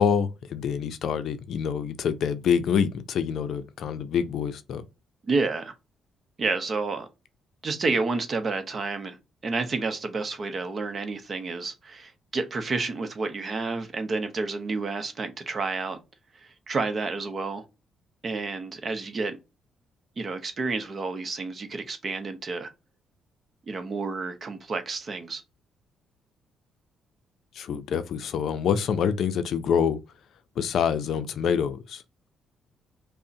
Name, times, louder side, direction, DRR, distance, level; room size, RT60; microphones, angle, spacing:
voice 1, 0.0-4.8 27.6-30.0 30.6-32.0, left 7 dB, 70° left, 0.4 m, -26 dB
voice 2, 5.2-5.7 6.4-7.1 7.6-9.2 9.4-16.0 16.3-17.6 18.2-19.4 20.2-22.7 23.7-25.4, right 3 dB, 40° right, 0.7 m, -30 dB
5.3 x 2.1 x 2.7 m
cardioid pair, 90°, 0 cm